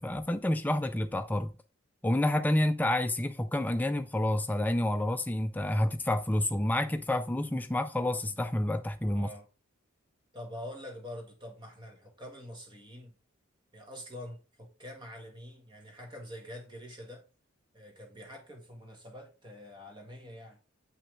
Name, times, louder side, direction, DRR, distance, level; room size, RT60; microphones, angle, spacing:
voice 1, 0.0-1.5 2.0-9.3, left 1 dB, 10° left, 0.4 m, -29 dB
voice 2, 9.1-9.5 10.3-13.1 13.7-17.2 17.7-20.6, left 1 dB, 20° right, 1.8 m, -45 dB
7.9 x 5.8 x 3.5 m
head